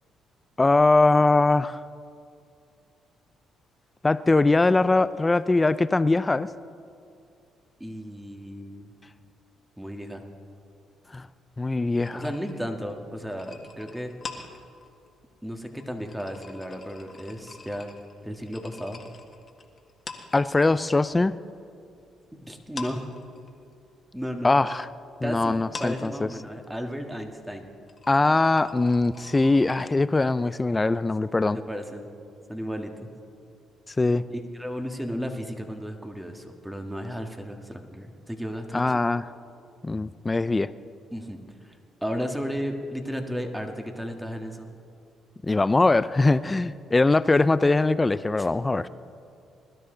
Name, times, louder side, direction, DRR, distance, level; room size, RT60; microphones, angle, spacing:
voice 1, 0.6-1.8 4.0-6.5 11.1-11.2 11.6-12.3 20.3-21.3 24.4-24.9 25.2-26.3 28.1-31.6 34.0-34.3 38.7-39.2 39.8-40.7 45.5-48.9, left 2 dB, 20° left, 16 dB, 0.4 m, -21 dB
voice 2, 7.8-8.9 9.8-10.3 12.1-14.1 15.4-17.9 18.2-19.0 22.5-23.1 24.1-24.5 25.2-27.7 31.3-31.4 31.7-32.1 32.5-33.1 34.3-39.0 41.1-41.4 41.6-41.7 42.0-44.8 48.4-48.5, equal, 5° right, 4 dB, 1.7 m, -34 dB
sound 1, 12.0-21.0 21.3-22.3 22.6-29.9, left 4 dB, 40° left, 1.7 m, -45 dB
21.0 x 12.5 x 3.9 m, 2.5 s
supercardioid pair, 75°, 0 cm